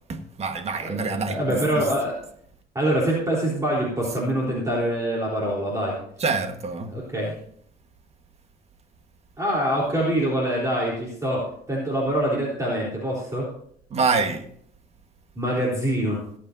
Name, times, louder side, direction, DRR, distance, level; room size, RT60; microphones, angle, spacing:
voice 1, 0.1-1.9 6.2-7.0 13.9-14.5, right 4 dB, 40° right, 1.5 m, -26 dB
voice 2, 0.8-2.1 2.7-6.0 6.9-7.4 9.4-13.5 15.4-16.2, right 1 dB, 20° right, 3.9 m, -25 dB
22.0 x 8.5 x 2.7 m
cardioid pair, 110°, 17 cm